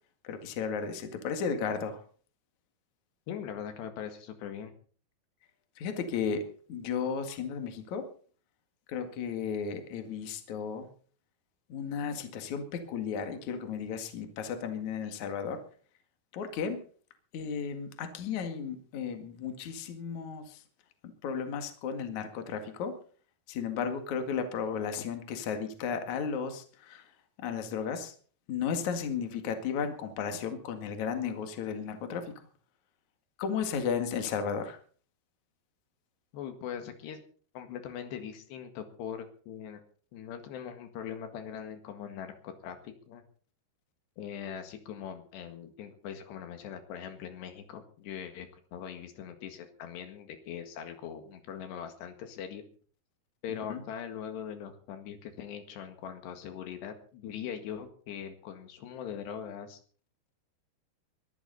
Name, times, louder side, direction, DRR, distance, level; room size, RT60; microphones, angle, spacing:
voice 1, 0.2-2.0 5.8-6.4 6.7-8.1 8.9-10.9 11.7-15.6 16.3-16.8 17.3-20.6 21.2-23.0 23.5-27.0 27.4-28.1 28.5-32.3 33.4-34.8 53.7-53.8, left 6 dB, 50° left, 6 dB, 2.9 m, -34 dB
voice 2, 3.3-4.7 36.3-37.2 37.6-39.8 40.1-43.2 44.2-52.7 53.4-59.8, left 8 dB, 80° left, 7 dB, 3.9 m, -41 dB
22.0 x 13.5 x 4.1 m, 0.43 s
omnidirectional pair, 4.9 m